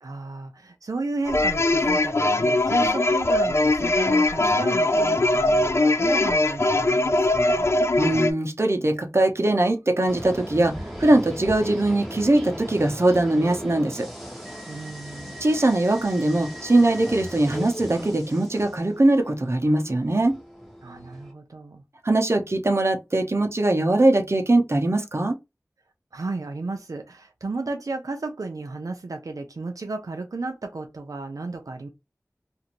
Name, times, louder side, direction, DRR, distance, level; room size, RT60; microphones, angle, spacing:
voice 1, 0.0-7.7 14.7-15.5 20.8-21.8 26.1-31.9, right 3 dB, 90° right, 0.5 m, -33 dB
sound 1, 1.3-8.3, left 2 dB, 50° left, 0.3 m, -21 dB
voice 2, 8.0-14.1 15.4-20.4 22.0-25.3, right 2 dB, 50° right, 0.7 m, -21 dB
sound 2, 10.1-21.3, equal, ahead, 1.1 m, -38 dB
2.5 x 2.5 x 2.9 m
wide cardioid pair, 45°, 6 cm